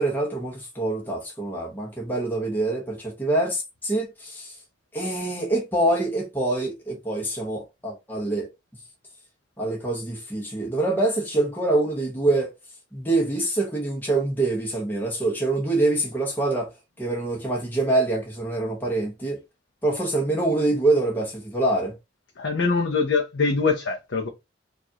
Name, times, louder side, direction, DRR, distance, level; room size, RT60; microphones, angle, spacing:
voice 1, 0.0-4.6 4.9-8.5 9.6-12.5 12.9-16.7 17.0-19.4 19.8-21.9, right 2 dB, 10° left, 1.0 m, -25 dB
voice 2, 22.4-24.3, left 4 dB, 75° left, 0.7 m, -23 dB
4.8 x 2.5 x 2.8 m
head